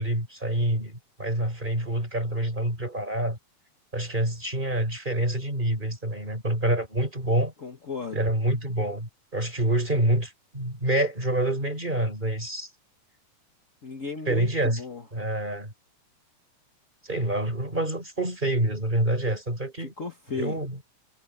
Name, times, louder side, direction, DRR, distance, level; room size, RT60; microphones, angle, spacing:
voice 1, 0.0-3.4 3.9-7.5 8.1-12.7 14.3-14.8 15.1-15.7 17.0-19.9 20.3-20.8, right 1 dB, 15° right, 4.9 m, -27 dB
voice 2, 7.6-8.2 13.8-15.0 19.8-20.6, left 4 dB, 60° left, 0.8 m, -35 dB
omnidirectional pair, 4.0 m